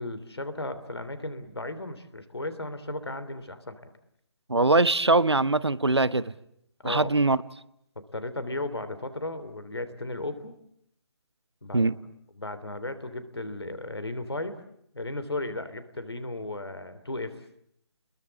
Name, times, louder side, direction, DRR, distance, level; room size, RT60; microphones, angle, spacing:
voice 1, 0.0-3.8 6.8-7.3 8.1-10.5 11.6-11.9 12.3-14.6 14.9-17.4, left 2 dB, 70° left, 3.2 m, -35 dB
voice 2, 4.5-6.2 6.8-7.4 11.7-11.9, right 2 dB, 75° right, 1.0 m, -22 dB
30.0 x 21.5 x 8.5 m
figure-of-eight pair, 145°, 14 cm